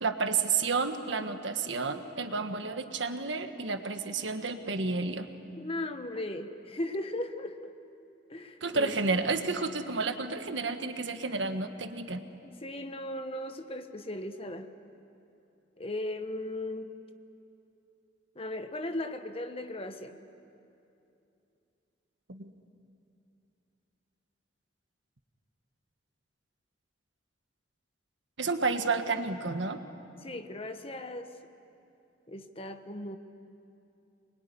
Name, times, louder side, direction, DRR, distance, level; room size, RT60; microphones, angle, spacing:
voice 1, 0.0-5.3 8.6-12.2 22.3-22.5 28.4-29.8, right 4 dB, 85° right, 7 dB, 1.5 m, -31 dB
voice 2, 5.5-7.7 8.3-9.0 12.4-14.7 15.8-16.9 18.3-20.2 30.2-31.3 32.3-33.2, left 1 dB, 30° left, 8 dB, 1.2 m, -37 dB
25.5 x 21.5 x 9.9 m, 2.7 s
head